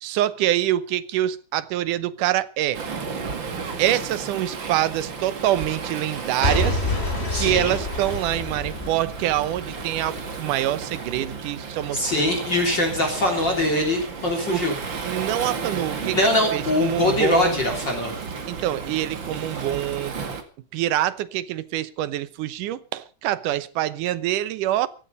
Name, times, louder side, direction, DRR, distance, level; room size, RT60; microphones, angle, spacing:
voice 1, 0.0-2.8 3.8-6.8 7.4-12.3 14.5-14.6 15.0-17.6 18.5-20.2 20.7-24.9, right 13 dB, 80° right, 2.5 m, -25 dB
Waves surf, 2.7-20.4, right 5 dB, 40° right, 2.5 m, -33 dB
Boom / Shatter / Crushing, 6.4-10.4 11.0-11.1, left 2 dB, 20° left, 4.1 m, -28 dB
voice 2, 7.3-7.8 11.9-14.7 16.1-18.1, left 1 dB, 35° left, 3.8 m, -22 dB
16.0 x 14.5 x 5.4 m
omnidirectional pair, 3.6 m